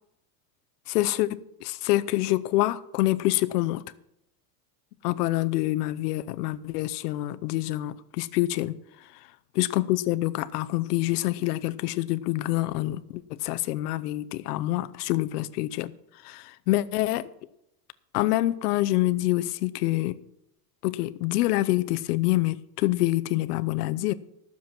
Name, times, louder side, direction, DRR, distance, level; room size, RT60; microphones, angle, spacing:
voice 1, 0.9-3.8 5.0-8.7 9.5-15.9 16.2-17.3 18.1-20.2 20.8-24.1, left 17 dB, 85° left, 0.8 m, -26 dB
13.0 x 7.2 x 6.0 m
supercardioid pair, 160°, 46 cm